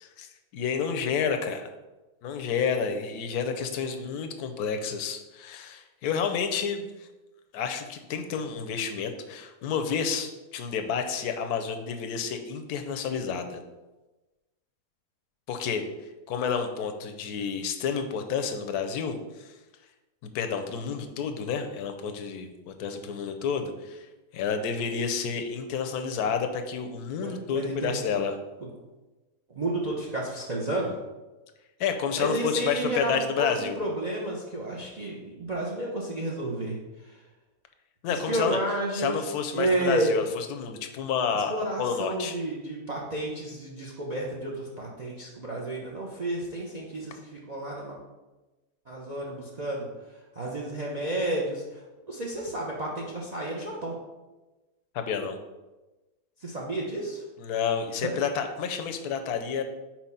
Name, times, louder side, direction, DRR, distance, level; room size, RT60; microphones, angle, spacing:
voice 1, 0.0-1.6 2.2-7.1 7.5-13.6 15.5-15.8 16.3-19.5 20.2-24.1 24.3-28.4 31.8-33.8 38.0-38.6 38.9-42.4 54.9-55.4 57.4-59.6, left 6 dB, 85° left, 6 dB, 1.2 m, -30 dB
voice 2, 27.2-27.9 29.6-31.0 32.2-37.2 38.1-39.2 39.5-40.2 41.3-48.0 48.9-49.9 50.4-53.9 56.4-57.2 58.0-58.2, right 1 dB, 35° right, -1 dB, 0.7 m, -31 dB
4.5 x 4.4 x 5.5 m, 1.1 s
omnidirectional pair, 1.6 m